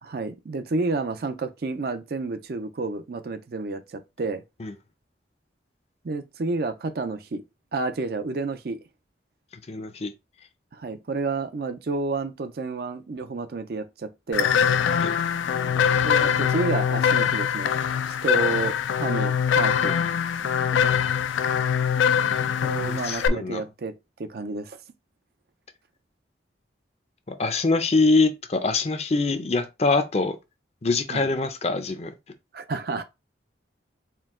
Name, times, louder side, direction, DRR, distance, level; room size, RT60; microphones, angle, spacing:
voice 1, 0.0-4.4 6.0-7.4 7.7-8.8 10.7-14.5 16.0-17.7 18.1-20.0 22.6-23.9 24.2-24.8 31.1-31.3 32.5-33.0, right 3 dB, 55° right, 0.4 m, -30 dB
voice 2, 9.7-10.1 15.0-15.2 22.8-23.6 27.3-30.4 30.8-32.1, left 3 dB, 35° left, 0.5 m, -24 dB
sound 1, 14.3-23.3, left 8 dB, 90° left, 0.4 m, -23 dB
4.4 x 2.2 x 3.6 m
head